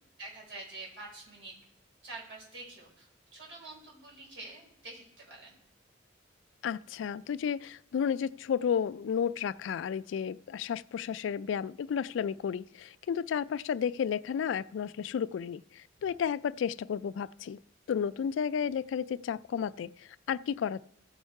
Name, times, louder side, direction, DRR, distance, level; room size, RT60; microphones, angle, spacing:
voice 1, 0.2-1.5 2.0-5.6, right 2 dB, 70° right, 4.9 m, -47 dB
voice 2, 6.6-17.6 17.9-20.8, left 7 dB, 80° left, 0.3 m, -32 dB
15.5 x 5.4 x 4.7 m
head